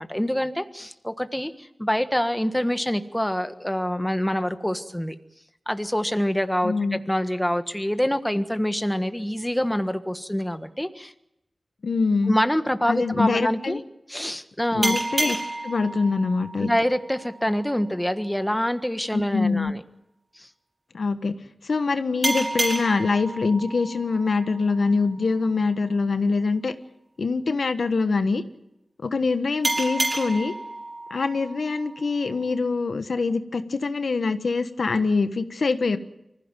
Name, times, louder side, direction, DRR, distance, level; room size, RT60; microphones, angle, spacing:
voice 1, 0.0-5.1 5.7-11.1 12.2-13.8 14.1-15.0 16.6-19.8 20.3-20.5, equal, 5° left, 9 dB, 1.4 m, -26 dB
voice 2, 6.6-7.0 11.8-12.4 12.9-13.8 14.7-15.4 15.6-16.7 19.1-19.7 20.9-21.3 21.6-26.7 27.2-28.4 29.0-30.5 31.1-36.0, left 4 dB, 80° left, 9 dB, 1.3 m, -24 dB
sound 1, 14.8-18.0 22.2-25.5 29.6-32.6, right 1 dB, 30° right, 5.0 m, -31 dB
25.0 x 16.0 x 9.1 m, 0.85 s
wide cardioid pair, 75°, 0 cm